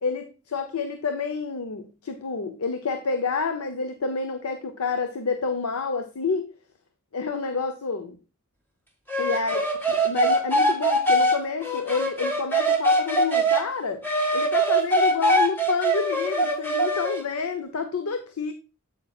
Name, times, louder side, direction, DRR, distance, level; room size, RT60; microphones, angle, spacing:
voice 1, 0.0-6.5 7.1-8.2 9.2-14.0 14.3-18.5, left 4 dB, 85° left, 0.7 m, -29 dB
sound 1, 9.1-13.6 14.0-17.2, right 1 dB, 10° left, 1.5 m, -22 dB
8.5 x 7.4 x 2.3 m
head